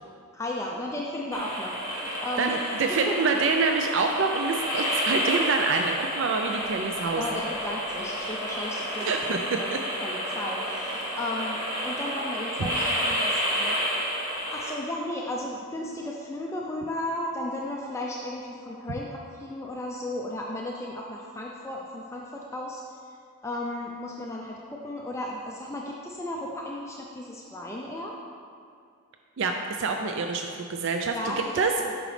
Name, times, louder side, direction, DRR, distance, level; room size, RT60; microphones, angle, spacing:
voice 1, 0.3-3.1 4.8-5.0 7.2-9.3 9.6-9.7 10.0-13.8 14.5-22.8 23.4-28.2 31.1-32.0, left 1 dB, 15° left, -2 dB, 0.4 m, -34 dB
sound 1, 1.3-14.7, equal, 15° right, 1.2 m, -30 dB
voice 2, 2.1-7.4 9.0-9.4 12.6-12.7 29.4-31.7, right 4 dB, 55° right, 4 dB, 0.4 m, -26 dB
8.8 x 6.1 x 3.3 m, 2.2 s
head